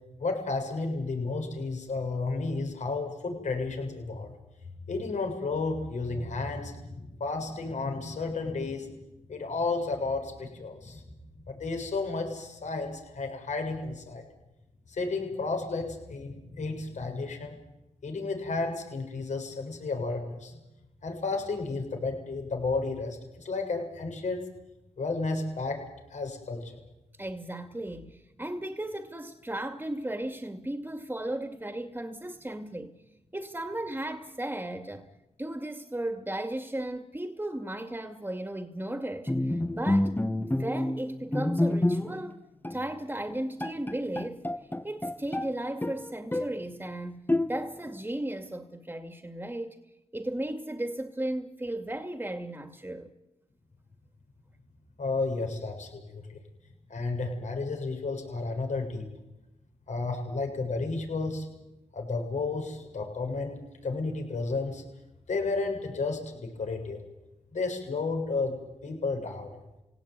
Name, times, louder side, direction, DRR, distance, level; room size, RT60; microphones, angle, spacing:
voice 1, 0.2-4.3 4.9-8.9 9.3-11.0 11.5-14.2 14.9-17.6 18.0-20.6 21.0-24.4 25.0-25.8 26.1-26.8 55.0-56.4 56.9-59.1 59.9-61.5 61.9-63.6 63.8-64.8 65.3-67.0 67.5-69.6, left 3 dB, 70° left, 7.6 m, -32 dB
voice 2, 27.2-32.9 33.3-35.1 35.4-42.4 42.7-44.5 44.8-49.8 50.1-53.1, right 1 dB, 15° right, 2.4 m, -35 dB
Bowed string instrument, 39.3-42.3 42.6-42.9 43.3-43.4 43.6-45.5 45.8-46.6 47.3-47.9, left 1 dB, 15° left, 1.7 m, -28 dB
24.5 x 17.5 x 9.5 m
cardioid pair, 45°, 13 cm